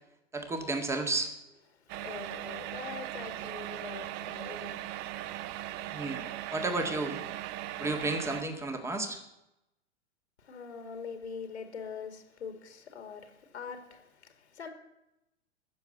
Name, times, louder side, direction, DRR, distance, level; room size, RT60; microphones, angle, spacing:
voice 1, 0.3-1.3 5.9-7.2 7.8-9.2, right 2 dB, 10° right, 1.8 m, -32 dB
voice 2, 1.8-5.4 10.4-14.7, left 6 dB, 80° left, 2.6 m, -44 dB
sound 1, 1.9-8.4, right 14 dB, 30° right, 0.6 m, -39 dB
13.5 x 7.3 x 9.4 m
hypercardioid pair, 105°, 33 cm